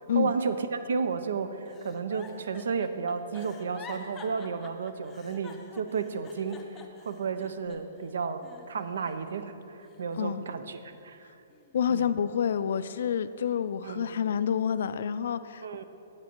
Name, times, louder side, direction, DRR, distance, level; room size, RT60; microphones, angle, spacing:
voice 1, 0.1-6.8 7.1-8.4 8.7-11.3 11.9-12.1 13.8-14.1 15.6-15.8, right 5 dB, 80° right, 11 dB, 0.6 m, -32 dB
Giggle, 1.7-8.0 8.4-9.4 9.8-11.0 11.5-11.8, left 4 dB, 15° left, 0.5 m, -49 dB
voice 2, 10.1-10.5 11.7-15.8, left 8 dB, 65° left, 14 dB, 0.3 m, -28 dB
8.7 x 8.2 x 4.5 m, 2.8 s
hypercardioid pair, 165°, 0 cm